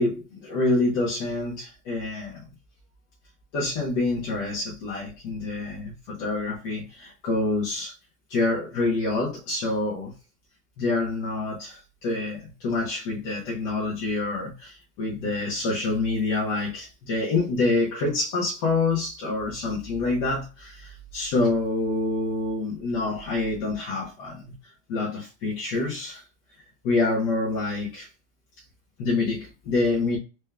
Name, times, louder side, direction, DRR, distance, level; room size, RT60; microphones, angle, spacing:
voice 1, 0.0-2.5 3.5-7.9 8.3-10.1 10.8-26.2 26.8-28.1 29.0-30.2, left 3 dB, 80° left, 1.6 m, -27 dB
4.3 x 2.3 x 3.4 m
omnidirectional pair, 1.8 m